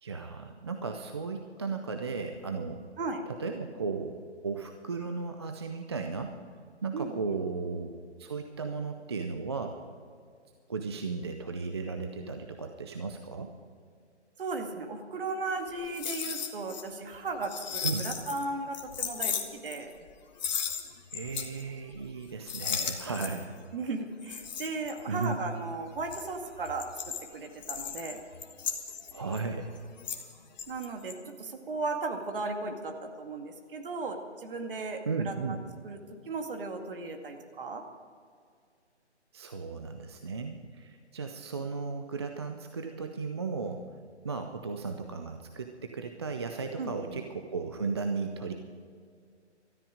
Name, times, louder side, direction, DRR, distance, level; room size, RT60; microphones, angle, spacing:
voice 1, 0.0-2.8 3.3-6.4 6.8-7.9 8.2-9.8 10.7-13.6 17.8-18.0 21.1-23.5 25.1-25.4 29.1-29.7 35.1-35.6 39.3-43.9 44.2-48.5, right 4 dB, 25° right, 5 dB, 0.5 m, -35 dB
voice 2, 6.9-7.4 14.4-19.9 23.7-28.2 30.7-36.0 36.2-37.8 46.8-47.2, right 3 dB, 50° right, 4 dB, 2.2 m, -36 dB
sound 1, 15.7-16.8 17.1-18.4 18.7-20.1 20.4-21.6 21.9-22.2 22.5-23.6 24.2-25.4 25.9-30.3 30.6-31.1, left 7 dB, 40° left, 1.5 m, -36 dB
18.5 x 13.5 x 5.0 m, 2.2 s
figure-of-eight pair, 150°, 35 cm